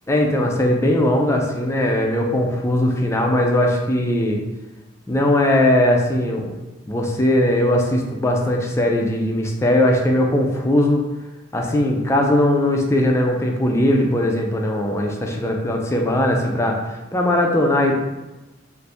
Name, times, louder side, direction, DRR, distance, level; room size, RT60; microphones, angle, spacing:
voice 1, 0.1-4.4 5.1-6.6 6.9-11.0 11.5-17.9, left 1 dB, 15° left, 1 dB, 0.3 m, -19 dB
2.6 x 2.5 x 3.3 m, 1.1 s
head